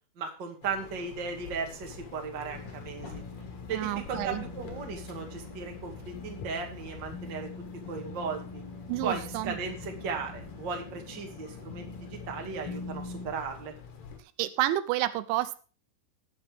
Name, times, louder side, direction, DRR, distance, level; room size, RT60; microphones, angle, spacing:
voice 1, 0.1-3.2 3.7-7.5 7.9-8.6 9.0-13.7, right 5 dB, 40° right, 2 dB, 1.7 m, -36 dB
sound 1, 0.6-14.2, left 5 dB, 50° left, 2.4 m, -47 dB
sound 2, 2.5-13.3, left 3 dB, 30° left, 3.9 m, -43 dB
voice 2, 3.7-4.4 8.9-9.5 14.4-15.6, right 15 dB, 85° right, 13 dB, 3.0 m, -30 dB
18.5 x 7.2 x 3.5 m, 0.36 s
omnidirectional pair, 5.4 m